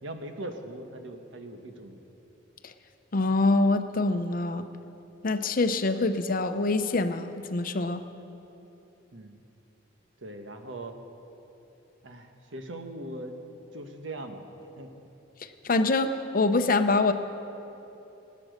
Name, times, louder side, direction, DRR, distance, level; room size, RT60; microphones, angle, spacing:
voice 1, 0.0-2.0 9.1-9.4 10.2-11.0 12.0-13.4 13.7-14.5 14.8-15.1, right 1 dB, 85° right, 5 dB, 1.2 m, -40 dB
voice 2, 3.1-4.7 5.2-8.0 15.6-17.1, left 3 dB, 50° left, 9 dB, 0.7 m, -25 dB
18.0 x 8.4 x 6.5 m, 3.0 s
head